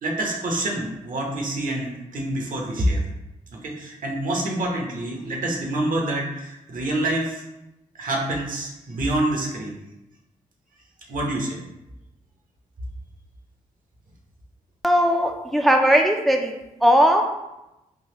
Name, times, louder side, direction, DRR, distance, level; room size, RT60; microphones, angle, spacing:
voice 1, 0.0-3.0 3.5-7.4 8.0-9.8 11.1-11.6, right 1 dB, 60° right, 0 dB, 1.0 m, -26 dB
voice 2, 14.8-16.5 16.8-17.2, equal, ahead, 2 dB, 0.4 m, -18 dB
3.8 x 2.4 x 2.9 m, 0.92 s
supercardioid pair, 50°, 15 cm